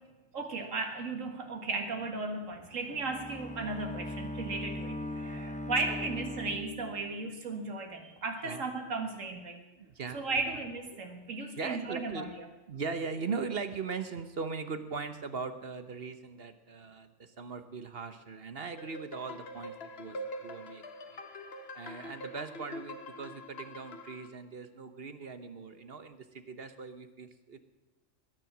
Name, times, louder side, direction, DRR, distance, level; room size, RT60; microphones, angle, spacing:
voice 1, 0.3-9.6 10.1-12.5, right 3 dB, 90° right, 4 dB, 2.1 m, -36 dB
Bowed string instrument, 2.6-7.4, left 1 dB, 5° left, 0.7 m, -40 dB
voice 2, 8.4-8.8 9.8-10.6 10.9-11.0 11.6-12.3 12.7-21.2 21.7-27.6, right 5 dB, 50° right, 10 dB, 1.2 m, -40 dB
sound 1, 18.8-24.3, left 1 dB, 55° left, 1.5 m, -44 dB
21.0 x 10.0 x 6.0 m, 1.1 s
omnidirectional pair, 1.3 m